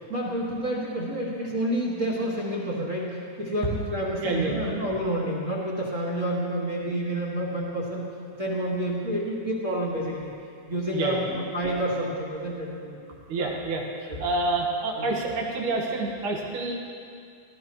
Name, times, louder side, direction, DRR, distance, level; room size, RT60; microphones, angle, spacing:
voice 1, 0.1-8.1 8.4-10.3 10.7-13.5 15.0-15.1, right 1 dB, 35° right, -6 dB, 1.3 m, -29 dB
voice 2, 4.2-4.7 10.9-11.3 13.3-16.8, right 2 dB, 70° right, -1 dB, 2.9 m, -28 dB
17.5 x 14.5 x 3.1 m, 2.3 s
omnidirectional pair, 3.8 m